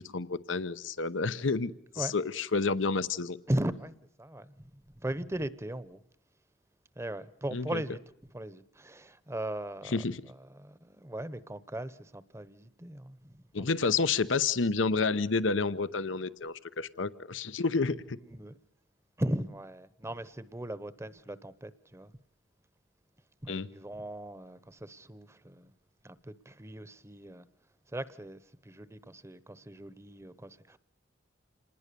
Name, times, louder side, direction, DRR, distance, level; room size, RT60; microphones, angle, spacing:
voice 1, 0.0-3.4 7.5-7.8 9.9-10.2 13.5-18.2 23.5-23.7, left 4 dB, 90° left, 0.9 m, -30 dB
voice 2, 3.5-6.0 7.0-8.0 8.3-10.0 10.5-13.4 18.2-18.5 19.2-22.1 23.4-25.7 26.0-27.4 27.9-30.8, right 1 dB, 15° right, 0.9 m, -38 dB
27.5 x 20.0 x 6.9 m
head